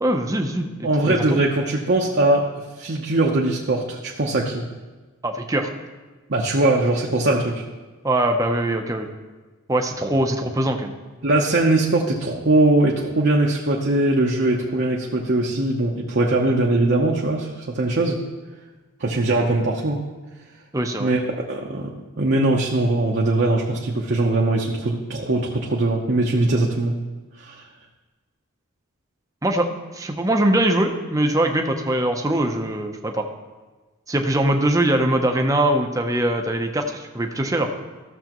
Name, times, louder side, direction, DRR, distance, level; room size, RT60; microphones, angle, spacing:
voice 1, 0.0-1.3 5.2-5.7 8.0-9.1 9.7-10.9 20.7-21.1 29.4-33.3 34.1-37.7, right 1 dB, 15° right, 4 dB, 0.6 m, -22 dB
voice 2, 0.8-2.4 2.8-4.6 6.3-7.6 11.2-18.2 19.0-20.0 21.0-21.2 21.5-21.9 22.2-27.0 27.4-27.6, right 2 dB, 50° right, -2 dB, 0.8 m, -21 dB
14.0 x 7.0 x 3.0 m, 1.3 s
head